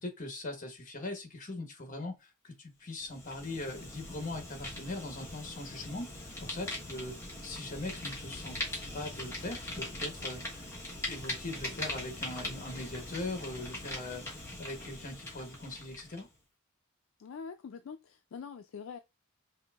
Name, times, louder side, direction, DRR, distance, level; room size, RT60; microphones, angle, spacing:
voice 1, 0.0-8.6 8.9-10.7 11.0-16.3, left 2 dB, 40° left, 1.1 m, -41 dB
Fire, 2.9-16.3, left 1 dB, 15° left, 1.1 m, -41 dB
voice 2, 17.2-19.0, left 6 dB, 65° left, 0.3 m, -44 dB
5.5 x 2.6 x 2.4 m
head